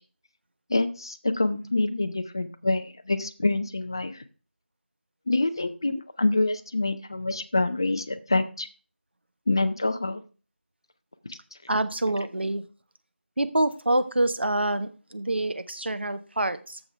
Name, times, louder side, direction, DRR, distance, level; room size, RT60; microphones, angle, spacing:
voice 1, 0.7-4.2 5.3-5.9 6.2-8.7 9.5-10.2 11.3-11.4, left 2 dB, 20° left, 10 dB, 0.5 m, -26 dB
voice 2, 11.7-12.6 13.4-16.8, right 1 dB, 60° right, 11 dB, 1.1 m, -26 dB
14.0 x 6.0 x 3.3 m, 0.35 s
figure-of-eight pair, 170°, 7 cm